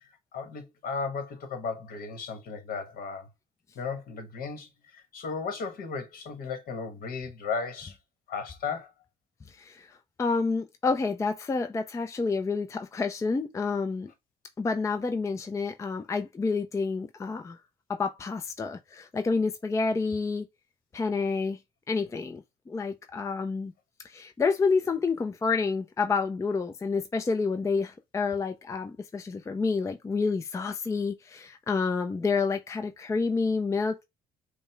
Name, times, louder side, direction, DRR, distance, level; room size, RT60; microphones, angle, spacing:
voice 1, 0.3-3.3 3.7-8.0 8.3-8.9, left 5 dB, 60° left, 1.2 m, -35 dB
voice 2, 9.5-14.1 14.6-17.6 17.9-20.5 20.9-21.6 21.9-23.7 24.0-34.0, left 4 dB, 15° left, 0.4 m, -29 dB
5.2 x 2.1 x 3.2 m
cardioid pair, 110°, 17 cm